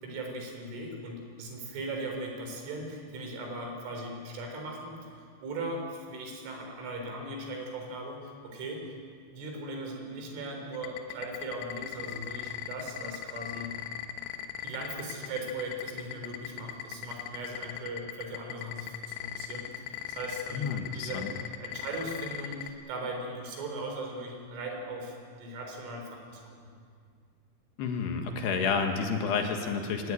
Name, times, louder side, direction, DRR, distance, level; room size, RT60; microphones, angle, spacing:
voice 1, 0.0-8.9 9.3-13.7 14.6-21.3 21.6-26.7, right 1 dB, 90° right, 2 dB, 6.4 m, -39 dB
sound 1, 10.7-22.7, left 12 dB, 85° left, 3.7 m, -38 dB
voice 2, 20.5-21.3 27.8-30.1, left 5 dB, 65° left, 4 dB, 3.5 m, -30 dB
24.5 x 15.5 x 10.0 m, 2.1 s
omnidirectional pair, 5.4 m